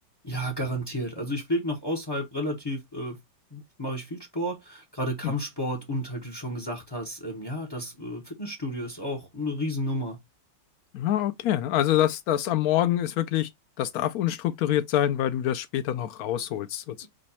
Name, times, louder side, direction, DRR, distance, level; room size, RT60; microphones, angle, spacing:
voice 1, 0.2-3.2 3.5-10.2, equal, 30° left, 0.4 m, -32 dB
voice 2, 10.9-13.5 13.8-17.1, left 12 dB, 70° left, 0.8 m, -26 dB
5.2 x 2.3 x 4.1 m
omnidirectional pair, 2.1 m